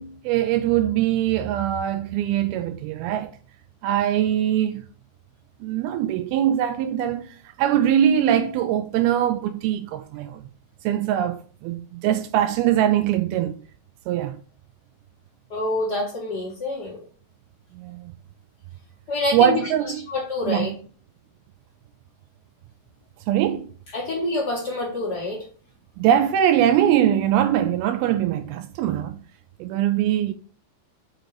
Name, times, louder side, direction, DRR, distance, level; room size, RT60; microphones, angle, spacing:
voice 1, 0.0-3.4 3.8-4.8 5.6-10.4 10.8-13.5 14.1-14.4 17.7-18.1 19.3-20.1 20.5-20.8 23.3-23.7 26.0-29.2 29.6-30.3, right 10 dB, 85° right, 2.4 m, -22 dB
voice 2, 15.5-17.0 19.1-19.6 20.1-20.7 23.9-25.4, left 2 dB, 75° left, 0.9 m, -26 dB
6.4 x 3.8 x 4.7 m
omnidirectional pair, 4.5 m